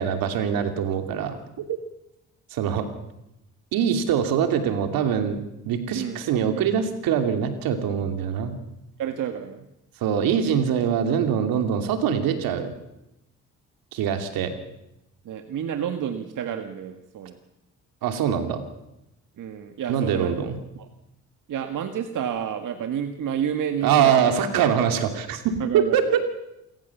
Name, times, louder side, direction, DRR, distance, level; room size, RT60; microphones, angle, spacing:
voice 1, 0.0-1.4 2.5-2.9 3.7-8.6 10.0-12.7 13.9-14.6 18.0-18.6 19.9-20.6 23.8-26.0, right 8 dB, 80° right, 6 dB, 2.9 m, -23 dB
voice 2, 9.0-9.6 14.2-14.3 15.3-17.4 19.4-20.4 20.8-20.9 21.5-24.3 25.6-26.2, right 9 dB, 65° right, 6 dB, 1.8 m, -30 dB
27.5 x 15.0 x 7.2 m, 0.88 s
supercardioid pair, 65°, 34 cm